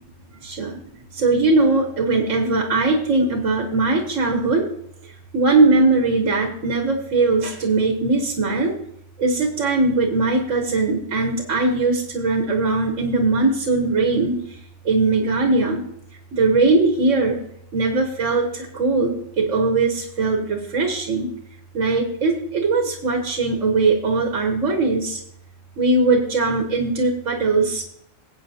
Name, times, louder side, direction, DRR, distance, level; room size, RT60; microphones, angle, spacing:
voice 1, 0.3-0.8 1.1-4.7 5.0-8.8 9.2-15.8 16.3-17.4 17.7-21.3 21.7-25.2 25.8-27.8, right 3 dB, 85° right, 2 dB, 1.6 m, -20 dB
17.5 x 8.4 x 2.8 m, 0.75 s
omnidirectional pair, 1.3 m